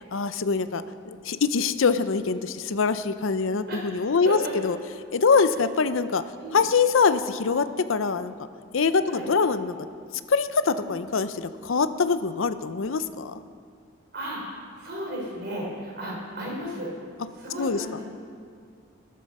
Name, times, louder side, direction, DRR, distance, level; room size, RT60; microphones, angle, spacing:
voice 1, 0.1-4.8 5.1-6.2 6.5-8.3 8.7-9.8 10.3-13.4 17.6-17.8, left 5 dB, 80° left, 12 dB, 0.6 m, -24 dB
voice 2, 3.7-4.7 5.3-5.6 6.4-6.6 9.1-9.3 10.8-11.0 14.1-14.4 14.8-16.9 17.3-18.0, equal, 50° right, -2 dB, 4.1 m, -34 dB
16.0 x 13.0 x 5.4 m, 2.2 s
head